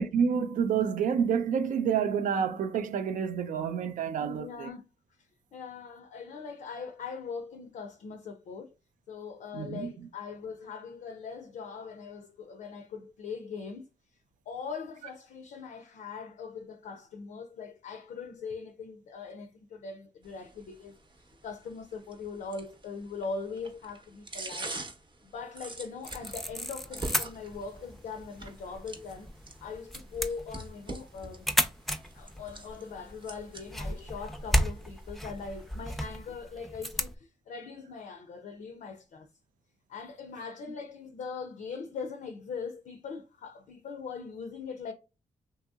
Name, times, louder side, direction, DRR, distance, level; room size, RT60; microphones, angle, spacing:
voice 1, 0.0-4.7 9.5-9.9, right 7 dB, 85° right, 0.4 m, -28 dB
voice 2, 4.2-4.8 5.2-8.7 9.1-13.9 14.5-21.0 21.4-24.8 25.2-31.5 32.1-39.3 39.9-44.9, left 5 dB, 75° left, 0.4 m, -41 dB
sound 1, 20.2-36.2, right 2 dB, 40° right, 0.7 m, -46 dB
sound 2, 26.0-37.2, equal, ahead, 0.4 m, -34 dB
2.8 x 2.7 x 2.3 m
cardioid pair, 65°, 13 cm